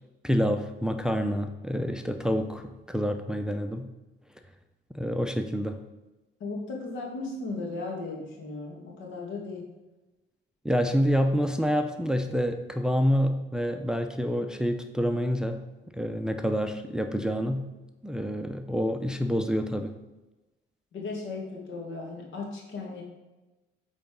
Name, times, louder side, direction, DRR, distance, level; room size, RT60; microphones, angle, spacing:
voice 1, 0.2-3.9 4.9-5.8 10.6-15.6 15.9-17.7 18.0-20.0, equal, 5° right, 6 dB, 0.6 m, -27 dB
voice 2, 6.4-9.6 20.9-23.0, left 3 dB, 80° left, 0 dB, 2.0 m, -36 dB
8.2 x 4.0 x 5.3 m, 1.1 s
cardioid pair, 90°, 20 cm